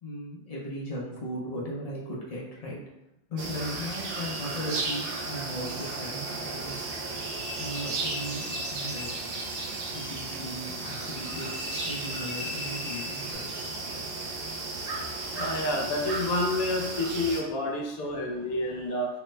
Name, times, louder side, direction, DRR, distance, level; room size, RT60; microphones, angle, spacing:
voice 1, 0.0-2.8 3.3-6.9 7.6-9.1 9.9-13.5 13.9-14.0 18.4-18.5, equal, 55° left, -5 dB, 0.4 m, -37 dB
sound 1, 3.4-17.4, right 3 dB, 80° right, 0.5 m, -34 dB
sound 2, 7.4-13.3, left 4 dB, 15° left, 0.8 m, -42 dB
voice 2, 15.3-19.1, left 1 dB, 75° left, 1 dB, 1.1 m, -29 dB
3.3 x 2.1 x 3.1 m, 0.88 s
omnidirectional pair, 1.5 m